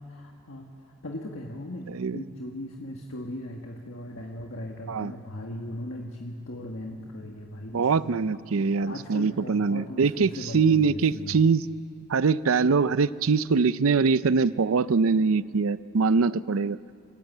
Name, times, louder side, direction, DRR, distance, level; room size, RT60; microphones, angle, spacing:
voice 1, 0.1-8.3 8.6-11.5, left 1 dB, 70° left, 0 dB, 1.6 m, -38 dB
voice 2, 1.9-2.2 4.9-5.1 7.7-11.6 12.1-16.8, right 5 dB, 80° right, 16 dB, 0.5 m, -23 dB
29.0 x 14.5 x 8.3 m, 2.3 s
head